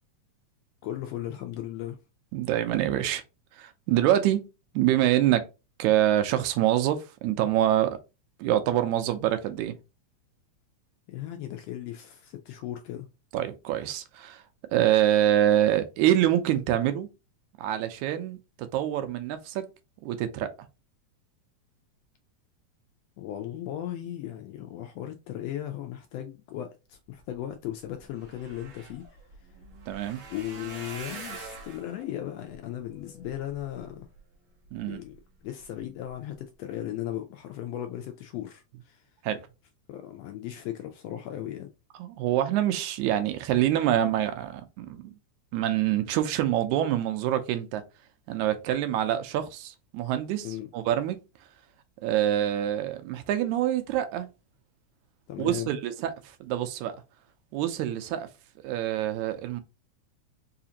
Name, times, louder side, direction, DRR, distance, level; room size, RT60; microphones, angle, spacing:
voice 1, 0.8-2.0 11.1-13.1 23.2-29.0 30.3-34.1 34.9-35.2 35.4-39.0 39.9-41.7 50.4-50.7 55.3-55.7, left 12 dB, 80° left, 1.5 m, -36 dB
voice 2, 2.3-3.2 3.5-4.5 4.7-5.5 5.8-8.0 8.4-9.8 13.3-14.4 14.7-17.1 17.6-19.7 20.0-20.5 29.9-30.2 34.7-35.0 39.2-39.4 42.0-45.1 45.5-47.8 48.3-50.5 50.7-51.2 52.0-54.3 55.4-56.1 56.4-57.0 57.5-58.3 58.6-59.6, right 12 dB, 85° right, 2.0 m, -26 dB
sound 1, 27.5-27.6 27.8-34.2 34.7-35.2 35.6-35.8 36.1-36.2, right 4 dB, 55° right, 1.5 m, -45 dB
4.8 x 2.5 x 2.8 m
omnidirectional pair, 3.3 m